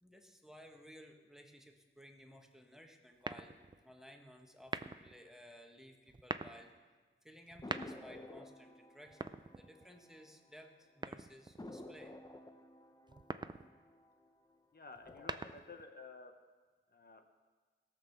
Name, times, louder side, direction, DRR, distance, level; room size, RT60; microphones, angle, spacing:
voice 1, 0.0-6.7 7.2-12.1, equal, ahead, 3 dB, 1.2 m, -57 dB
sound 1, 3.2-3.8 4.6-5.2 6.1-6.6 7.5-8.2 9.1-10.0 11.0-11.6 13.1-13.7 15.0-15.8, right 3 dB, 20° right, 0.4 m, -43 dB
sound 2, 7.6-10.7 11.0-11.1 11.6-14.5 14.9-15.5, left 1 dB, 20° left, 0.8 m, -52 dB
voice 2, 14.7-16.3 16.9-17.3, left 3 dB, 50° left, 5 dB, 0.9 m, -53 dB
17.0 x 6.2 x 7.0 m, 1.4 s
wide cardioid pair, 110°, 21 cm